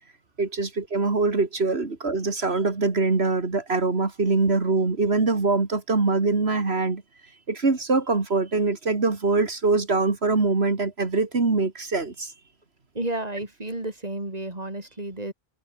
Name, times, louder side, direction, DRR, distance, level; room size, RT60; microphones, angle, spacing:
voice 1, 0.4-7.0 7.5-12.3, right 3 dB, 85° right, 2.8 m, -23 dB
voice 2, 12.9-15.3, right 2 dB, 40° right, 4.3 m, -32 dB
open air
omnidirectional pair, 1.0 m